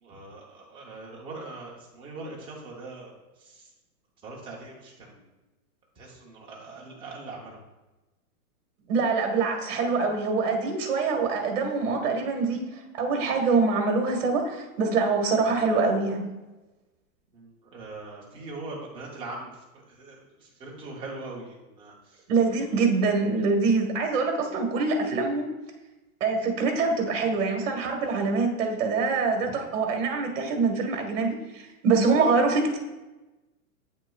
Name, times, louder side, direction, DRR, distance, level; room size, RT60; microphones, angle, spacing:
voice 1, 0.0-3.1 3.4-3.7 4.2-5.3 6.0-7.6 17.3-19.5 19.9-21.9 29.4-29.5, right 2 dB, 10° right, -3 dB, 0.7 m, -41 dB
voice 2, 8.9-12.7 12.9-16.3 22.3-25.5 26.2-32.8, right 4 dB, 55° right, 3 dB, 1.5 m, -24 dB
8.8 x 6.2 x 2.3 m, 1.1 s
supercardioid pair, 165°, 45 cm